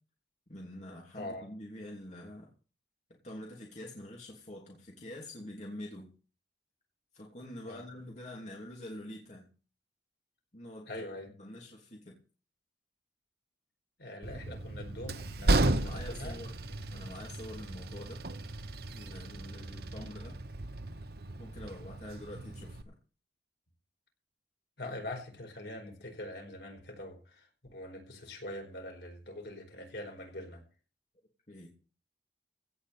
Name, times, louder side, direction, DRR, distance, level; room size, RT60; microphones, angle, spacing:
voice 1, 0.5-2.5 3.2-6.1 7.1-9.5 10.5-11.1 11.4-12.2 14.3-14.5 15.7-16.5 16.9-18.2 18.9-20.4 21.4-22.9 31.5-31.7, left 1 dB, 40° left, 3.0 m, -46 dB
voice 2, 1.1-1.5 7.6-7.8 10.9-11.3 14.0-16.4 24.8-27.5 27.7-30.6, left 1 dB, 70° left, 4.7 m, -43 dB
Train, 14.2-22.8, right 2 dB, 60° right, 1.0 m, -34 dB
16.5 x 5.6 x 8.4 m
head